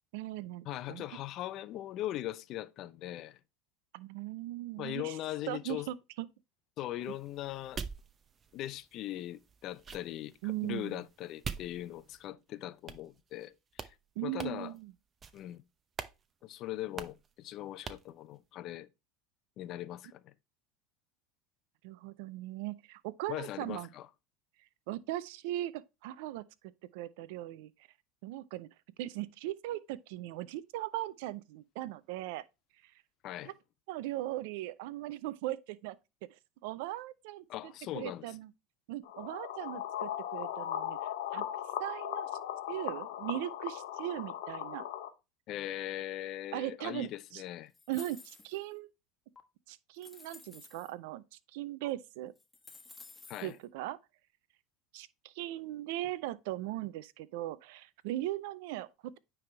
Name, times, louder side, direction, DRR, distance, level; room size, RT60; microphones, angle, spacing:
voice 1, 0.1-1.0 3.9-5.2 5.5-6.3 10.4-11.0 14.2-14.9 21.8-23.9 24.9-26.5 26.9-27.7 28.2-28.7 29.0-32.4 32.8-32.9 33.5-33.6 33.9-36.0 36.6-38.5 38.9-41.0 41.3-41.4 41.8-42.3 42.7-44.8 46.5-47.4 47.9-48.9 49.7-52.3 53.4-54.0 54.9-59.2, right 15 dB, 75° right, 0.4 m, -39 dB
voice 2, 0.7-3.4 4.8-5.9 6.8-7.8 8.5-13.9 14.2-14.7 15.3-15.6 16.4-18.9 19.6-20.3 23.3-24.1 33.2-33.5 37.5-38.3 45.5-47.7 53.3-53.6, left 14 dB, 55° left, 0.5 m, -40 dB
sound 1, 7.0-12.3 12.9-13.5 13.7-13.9 14.4-14.8 15.2-15.6 16.0-16.2 16.4-16.5 17.0-17.3 17.9-18.1, right 6 dB, 30° right, 0.7 m, -45 dB
sound 2, 39.0-45.1, left 11 dB, 80° left, 0.9 m, -38 dB
sound 3, 47.7-48.7 49.4-49.5 49.9-50.9 51.8-51.9 52.3-53.6, left 3 dB, 15° left, 1.4 m, -53 dB
9.3 x 3.4 x 3.3 m
hypercardioid pair, 95°, 0 cm